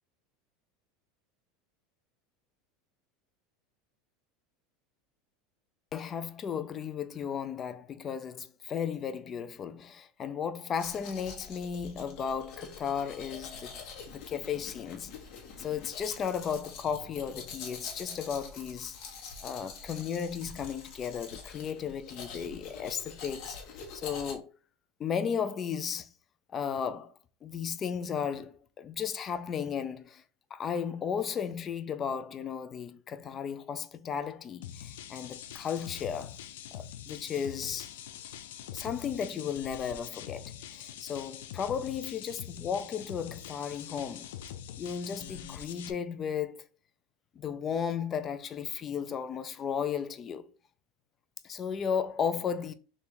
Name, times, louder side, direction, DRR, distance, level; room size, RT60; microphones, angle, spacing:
voice 1, 5.9-13.7 14.1-15.1 15.6-19.0 19.4-23.6 23.9-24.5 25.0-26.1 26.5-27.1 27.4-30.2 30.5-36.4 36.7-37.9 38.7-44.3 44.8-46.6 47.4-50.4 51.4-52.7, left 7 dB, 30° left, 0.5 m, -34 dB
Domestic sounds home sounds, 10.8-24.4, left 5 dB, 55° left, 1.3 m, -45 dB
sound 1, 34.6-45.9, left 10 dB, 85° left, 0.4 m, -44 dB
3.4 x 2.8 x 4.6 m
supercardioid pair, 125°, 0 cm